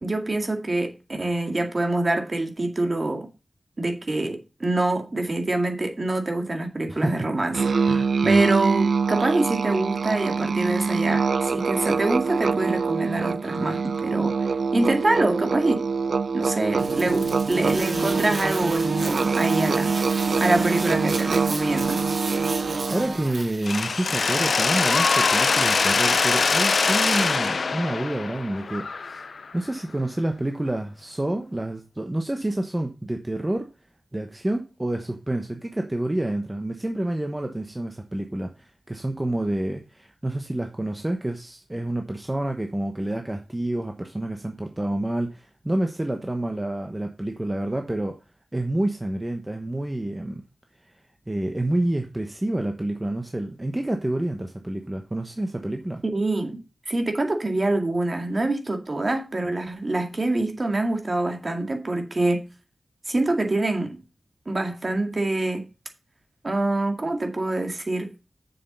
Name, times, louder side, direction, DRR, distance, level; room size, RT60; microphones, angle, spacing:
voice 1, 0.0-3.3 3.8-7.9 8.2-14.3 14.7-15.9 16.3-19.9 20.4-22.0 56.1-56.6 56.9-62.4 63.1-64.0 64.5-65.6 66.4-68.1, right 2 dB, 40° right, 2.1 m, -25 dB
voice 2, 6.9-7.3 7.9-8.5 22.5-29.2 29.5-33.7 34.1-48.2 48.5-50.4 51.3-56.0, right 1 dB, 20° right, 1.1 m, -28 dB
Musical instrument, 7.5-23.1, right 5 dB, 85° right, 0.4 m, -25 dB
sound 1, 16.8-23.9, right 2 dB, 65° right, 2.2 m, -31 dB
Mechanisms, 23.7-29.5, left 4 dB, 75° left, 0.4 m, -23 dB
7.3 x 6.9 x 5.6 m
wide cardioid pair, 80°, 0 cm